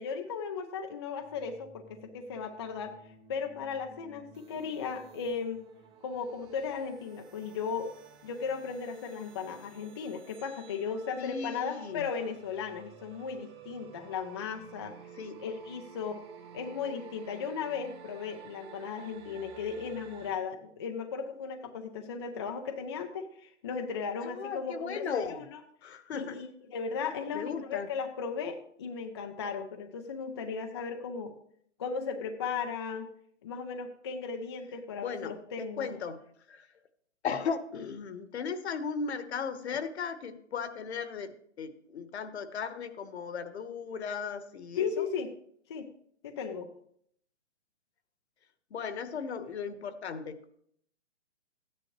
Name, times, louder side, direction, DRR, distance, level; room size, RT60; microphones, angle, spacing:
voice 1, 0.0-2.9 3.3-5.6 6.0-7.9 8.2-14.9 15.4-16.2 16.5-25.6 26.1-31.3 31.8-33.1 33.4-35.9 44.8-45.3 45.7-45.9 46.2-46.7, left 6 dB, 20° left, 4 dB, 0.5 m, -36 dB
sound 1, 1.2-20.4, right 8 dB, 20° right, 0.7 m, -53 dB
voice 2, 11.2-12.1 15.2-15.3 24.2-25.5 25.8-26.4 27.3-27.9 35.0-36.2 36.5-36.7 37.2-45.1 48.7-50.4, left 6 dB, 60° left, 12 dB, 1.2 m, -36 dB
13.5 x 9.9 x 3.1 m, 0.66 s
hypercardioid pair, 150°, 37 cm